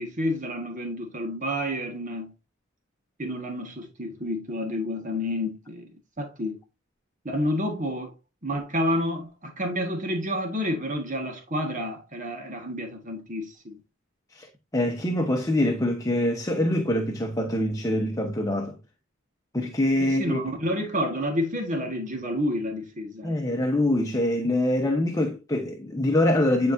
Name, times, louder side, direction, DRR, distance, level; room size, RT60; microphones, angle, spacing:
voice 1, 0.0-2.3 3.2-5.9 6.2-6.6 7.3-8.1 8.4-13.8 20.0-23.4, equal, 40° right, 1.7 m, -29 dB
voice 2, 14.3-18.8 19.5-20.4 23.2-26.7, left 1 dB, 20° left, 1.0 m, -24 dB
10.5 x 4.7 x 2.7 m
head